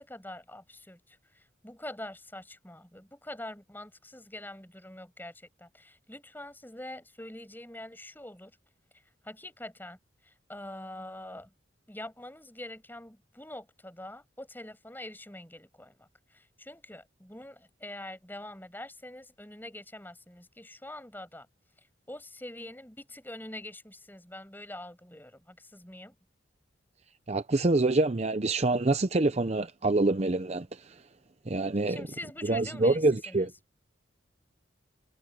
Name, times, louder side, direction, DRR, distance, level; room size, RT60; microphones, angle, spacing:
voice 1, 0.0-8.5 9.2-10.0 10.2-11.5 11.9-21.5 22.1-26.1 31.9-33.5, left 1 dB, 10° left, 7.8 m, -44 dB
voice 2, 27.3-30.8 31.5-32.1 32.5-33.5, right 2 dB, 35° right, 0.6 m, -26 dB
head